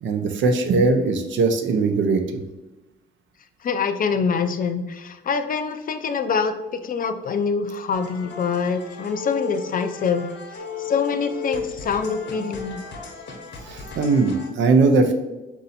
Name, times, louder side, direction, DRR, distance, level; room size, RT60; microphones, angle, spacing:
voice 1, 0.0-2.4 13.6-15.1, right 3 dB, 70° right, 6 dB, 0.7 m, -20 dB
voice 2, 3.6-10.3 10.5-12.8, left 5 dB, 45° left, 9 dB, 0.4 m, -25 dB
sound 1, 7.9-14.5, left 5 dB, 65° left, 0.9 m, -34 dB
4.2 x 2.7 x 4.1 m, 1.0 s
cardioid pair, 90°, 20 cm